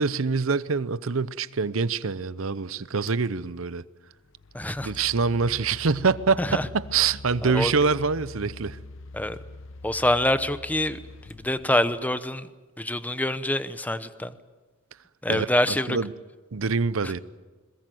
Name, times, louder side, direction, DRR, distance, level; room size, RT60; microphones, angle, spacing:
voice 1, 0.0-3.8 4.8-8.8 15.3-16.1 16.5-17.2, right 5 dB, 70° right, 0.7 m, -25 dB
sound 1, 3.1-3.3 4.2-12.2, left 2 dB, 65° left, 0.9 m, -43 dB
voice 2, 4.5-4.9 6.4-6.7 7.4-7.7 9.1-9.4 9.8-11.0 11.3-12.5 12.8-14.3 15.2-16.0, left 1 dB, 10° left, 0.8 m, -25 dB
22.0 x 20.5 x 9.2 m
head